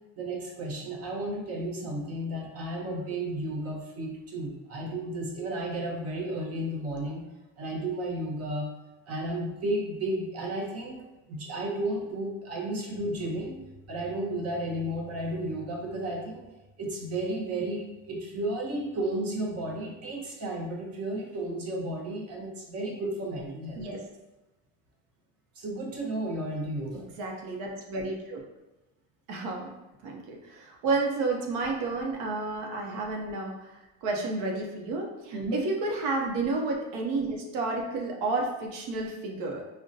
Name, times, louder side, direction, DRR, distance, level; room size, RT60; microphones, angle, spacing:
voice 1, 0.2-7.2 7.6-8.7 9.1-16.5 16.8-23.9 25.6-27.1 35.3-35.6, right 1 dB, 40° right, -2 dB, 0.8 m, -33 dB
voice 2, 26.9-28.4 29.3-29.7 30.0-39.6, right 3 dB, 70° right, 0 dB, 0.7 m, -31 dB
3.6 x 2.2 x 2.6 m, 1.0 s
supercardioid pair, 110°, 38 cm